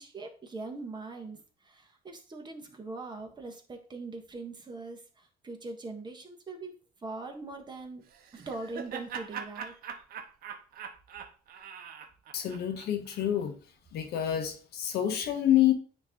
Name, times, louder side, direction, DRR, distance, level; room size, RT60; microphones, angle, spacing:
voice 1, 0.0-6.7 7.0-8.0 8.3-9.7, right 3 dB, 25° right, 1.5 m, -41 dB
Laughter, 8.1-13.3, right 7 dB, 60° right, 1.0 m, -42 dB
voice 2, 12.3-13.5 13.9-15.7, left 11 dB, 75° left, 1.3 m, -27 dB
9.5 x 3.2 x 3.8 m
cardioid pair, 110°, 17 cm